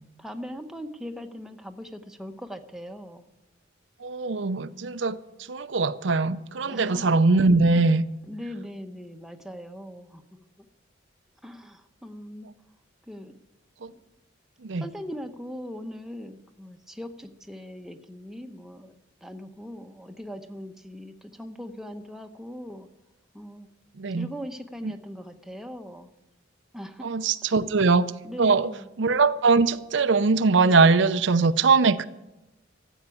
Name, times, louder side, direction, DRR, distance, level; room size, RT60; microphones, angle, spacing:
voice 1, 0.2-3.2 6.6-7.1 8.3-10.4 11.4-12.5 13.1-13.4 13.9-14.0 14.7-19.0 19.2-22.9 23.3-23.7 24.1-26.1 26.7-27.1 28.2-28.9, equal, ahead, 0.9 m, -40 dB
voice 2, 4.0-5.2 5.5-8.0 13.8-13.9 14.6-14.8 24.0-24.3 24.8-25.0 27.0-28.1 28.4-28.7 29.0-32.0, right 4 dB, 75° right, 0.6 m, -21 dB
14.0 x 8.1 x 9.8 m
head